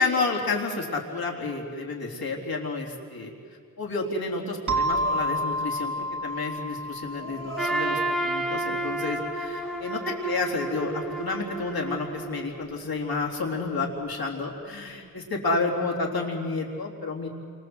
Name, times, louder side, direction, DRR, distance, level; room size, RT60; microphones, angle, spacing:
voice 1, 0.0-3.3 3.8-5.9 6.2-17.3, left 3 dB, 90° left, -1 dB, 3.9 m, -30 dB
sound 1, 4.7-9.1, equal, 55° right, 3.6 m, -30 dB
sound 2, 4.8-5.9 7.1-8.5 9.0-9.3 9.6-10.5 11.2-11.3, right 2 dB, 35° right, 4.1 m, -40 dB
Trumpet, 7.6-12.7, right 2 dB, ahead, 2.7 m, -31 dB
29.0 x 25.5 x 8.1 m, 2.2 s
wide cardioid pair, 130°, 35 cm